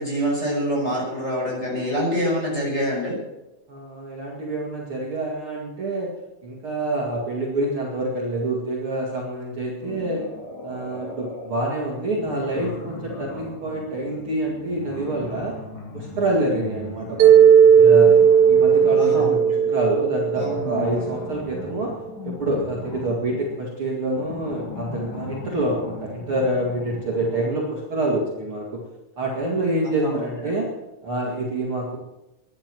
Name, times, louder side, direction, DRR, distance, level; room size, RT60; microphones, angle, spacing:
voice 1, 0.0-3.2 19.0-19.7 20.3-21.0 30.0-30.5, equal, 20° left, -3 dB, 6.0 m, -26 dB
voice 2, 3.7-6.1 6.4-10.2 10.6-15.6 15.9-21.9 22.2-28.8 29.2-30.7 31.0-32.0, right 1 dB, 45° right, -3 dB, 2.8 m, -27 dB
sound 1, 9.8-11.5 12.2-19.3 20.3-27.7, left 3 dB, 70° left, 4.0 m, -38 dB
Mallet percussion, 17.2-21.3, right 8 dB, 70° right, 1.4 m, -15 dB
13.0 x 11.0 x 7.7 m, 0.96 s
omnidirectional pair, 3.8 m